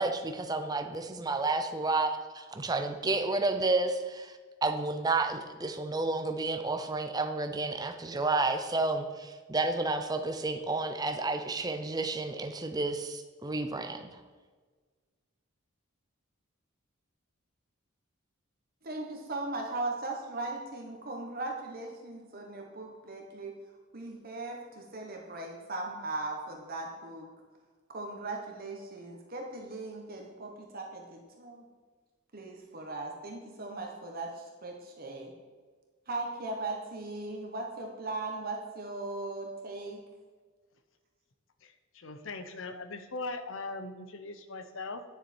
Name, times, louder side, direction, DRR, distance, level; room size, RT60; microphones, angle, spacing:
voice 1, 0.0-14.0, right 3 dB, 20° right, 6 dB, 0.6 m, -31 dB
voice 2, 18.8-23.5 23.9-27.3 27.9-31.7 32.3-35.3 36.1-40.0, right 2 dB, 45° right, 1 dB, 1.2 m, -38 dB
voice 3, 41.6-45.0, left 3 dB, 70° left, 8 dB, 0.8 m, -40 dB
9.6 x 7.3 x 4.4 m, 1.4 s
head